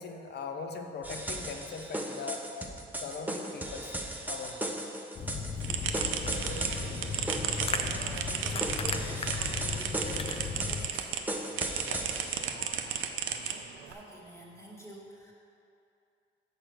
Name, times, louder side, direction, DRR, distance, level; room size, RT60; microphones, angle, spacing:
voice 1, 0.0-2.4 2.9-3.9 4.3-4.7 6.7-6.9 11.8-12.1 12.6-12.8, left 5 dB, 55° left, 5 dB, 0.7 m, -40 dB
sound 1, 1.0-12.4, right 1 dB, 10° right, 0.7 m, -37 dB
sound 2, 5.2-10.9, left 5 dB, 30° left, 0.4 m, -36 dB
sound 3, 5.6-11.2 11.6-13.9, right 8 dB, 80° right, 0.6 m, -34 dB
voice 2, 6.8-11.1 13.4-15.3, right 1 dB, 15° left, -4 dB, 1.5 m, -48 dB
6.4 x 4.7 x 6.2 m, 2.7 s
cardioid pair, 90°, 20 cm